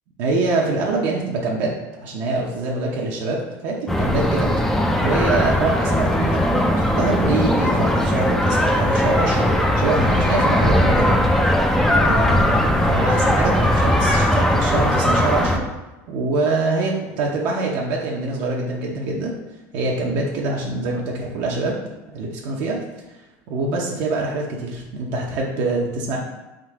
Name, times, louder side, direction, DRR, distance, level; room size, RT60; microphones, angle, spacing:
voice 1, 0.2-1.7 2.0-4.5 5.0-11.3 12.0-15.6 16.1-19.4 19.7-21.8 22.1-22.8 23.5-26.2, right 3 dB, 65° right, -2 dB, 0.8 m, -24 dB
sound 1, 3.9-15.6, left 1 dB, 5° left, 0.4 m, -19 dB
3.8 x 2.7 x 4.6 m, 1.1 s
cardioid pair, 140°, 7 cm